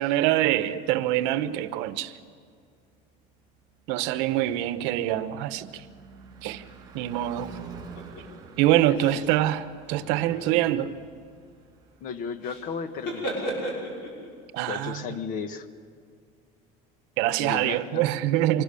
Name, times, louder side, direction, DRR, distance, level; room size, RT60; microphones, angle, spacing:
voice 1, 0.0-2.1 3.9-5.8 6.4-6.6 6.9-7.6 8.6-10.9 14.5-15.0 17.2-18.6, right 13 dB, 70° right, 1.0 m, -25 dB
Car passing by / Truck / Engine, 3.4-13.7, right 4 dB, 20° right, 3.6 m, -49 dB
sound 1, 8.0-8.2 8.9-9.3 9.8-10.6 12.4-12.7 12.9-14.3, equal, 60° left, 6.2 m, -34 dB
voice 2, 8.9-9.2 12.0-13.5 14.6-15.7 17.4-18.0, left 6 dB, 45° left, 1.2 m, -34 dB
25.0 x 19.0 x 7.0 m
cardioid pair, 165°, 19 cm